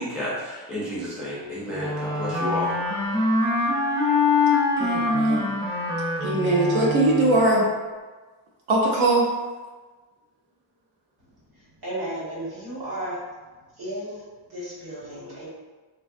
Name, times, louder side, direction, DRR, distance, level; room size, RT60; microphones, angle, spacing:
voice 1, 0.0-2.7, equal, ahead, -7 dB, 0.4 m, -31 dB
Wind instrument woodwind instrument, 1.7-7.5, left 3 dB, 30° right, 1.1 m, -24 dB
voice 2, 4.8-5.5 6.2-7.7 8.7-9.3, right 2 dB, 80° right, -3 dB, 0.7 m, -21 dB
voice 3, 11.8-13.2 13.8-14.2 14.5-15.5, right 1 dB, 50° right, -8 dB, 1.3 m, -33 dB
3.3 x 2.2 x 2.4 m, 1.3 s
wide cardioid pair, 180°, 48 cm